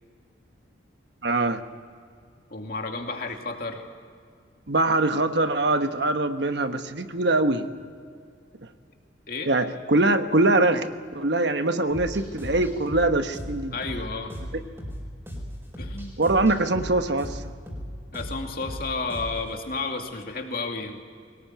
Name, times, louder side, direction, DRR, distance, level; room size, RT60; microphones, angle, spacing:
voice 1, 1.2-1.6 4.7-7.7 9.5-10.9 11.1-13.8 16.2-17.4, right 2 dB, 65° right, 8 dB, 1.2 m, -23 dB
voice 2, 2.5-3.8 9.3-9.5 13.7-14.4 15.8-16.3 18.1-21.0, left 3 dB, 50° left, 3 dB, 2.5 m, -32 dB
sound 1, 11.9-19.5, equal, 15° right, 4.5 m, -37 dB
23.0 x 19.0 x 9.2 m, 2.1 s
head